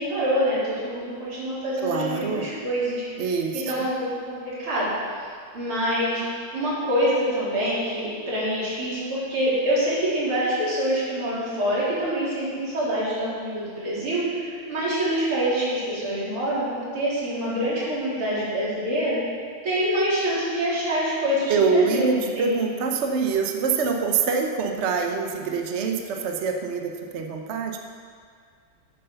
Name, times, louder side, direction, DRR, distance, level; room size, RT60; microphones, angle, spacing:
voice 1, 0.0-3.3 3.7-5.0 5.5-6.3 6.5-19.2 19.6-22.5, equal, 85° right, -9 dB, 4.7 m, -26 dB
voice 2, 1.8-2.5 3.2-3.7 21.5-27.8, right 5 dB, 50° right, 3 dB, 0.9 m, -25 dB
9.5 x 8.4 x 6.9 m, 2.1 s
omnidirectional pair, 2.3 m